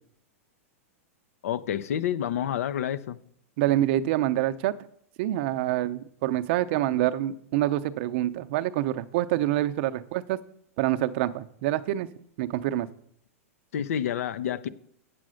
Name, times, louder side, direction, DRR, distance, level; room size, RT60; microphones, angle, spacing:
voice 1, 1.4-3.2 13.7-14.7, left 9 dB, 75° left, 0.6 m, -29 dB
voice 2, 3.6-4.7 5.2-10.4 10.8-12.1 12.4-12.9, right 14 dB, 50° right, 0.6 m, -26 dB
8.5 x 7.7 x 6.3 m
supercardioid pair, 150°, 8 cm